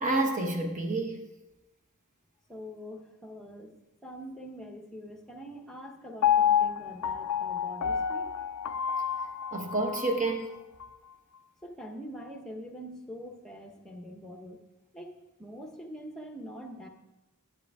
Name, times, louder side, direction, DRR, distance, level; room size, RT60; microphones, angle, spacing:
voice 1, 0.0-1.2 9.5-10.5, right 2 dB, 35° right, 3 dB, 1.2 m, -29 dB
voice 2, 2.5-3.7 4.0-8.3 11.6-14.6 14.9-16.9, equal, 5° left, 3 dB, 0.9 m, -44 dB
Piano, 6.2-10.3 10.8-10.9, left 8 dB, 85° left, 0.4 m, -28 dB
11.5 x 8.0 x 3.5 m, 1.0 s
head